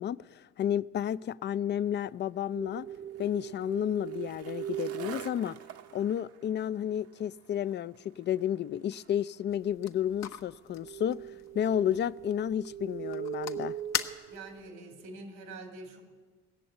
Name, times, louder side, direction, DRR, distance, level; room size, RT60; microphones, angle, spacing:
voice 1, 0.0-2.9 3.2-5.6 5.9-13.8, left 10 dB, 35° left, 0.4 m, -31 dB
Skateboard, 1.9-12.4, right 8 dB, 50° right, 0.8 m, -52 dB
sound 1, 2.5-6.3 10.7-15.1, right 11 dB, 30° right, 0.4 m, -41 dB
sound 2, 9.5-14.7, left 9 dB, 60° left, 0.9 m, -41 dB
voice 2, 14.3-16.0, right 2 dB, 85° right, 2.4 m, -45 dB
18.0 x 7.0 x 8.6 m
supercardioid pair, 70°, 30 cm